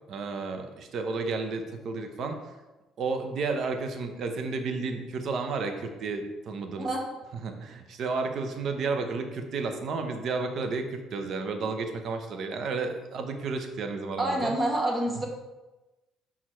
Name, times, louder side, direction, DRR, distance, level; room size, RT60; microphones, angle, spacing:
voice 1, 0.1-2.4 3.0-6.9 7.4-14.5, right 4 dB, 55° right, 6 dB, 0.9 m, -32 dB
voice 2, 14.2-15.3, right 1 dB, 25° right, 0 dB, 1.5 m, -27 dB
5.7 x 4.8 x 4.5 m, 1.1 s
cardioid pair, 100°, 0 cm